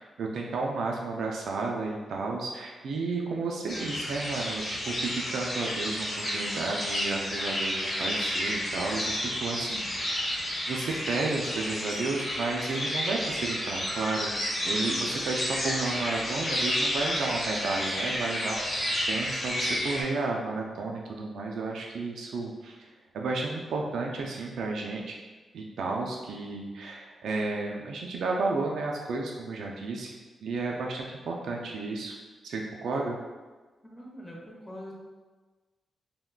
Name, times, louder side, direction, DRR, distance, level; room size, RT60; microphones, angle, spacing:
voice 1, 0.0-10.2 10.7-14.3 14.6-18.8 19.1-25.2 25.5-30.1 30.4-32.2 32.4-33.2, right 3 dB, 80° right, 0 dB, 0.3 m, -32 dB
sound 1, 3.7-20.0, left 1 dB, 45° left, 1.2 m, -31 dB
voice 2, 33.8-34.9, equal, 15° left, -4 dB, 0.8 m, -43 dB
3.4 x 2.2 x 2.3 m, 1.3 s
cardioid pair, 65°, 0 cm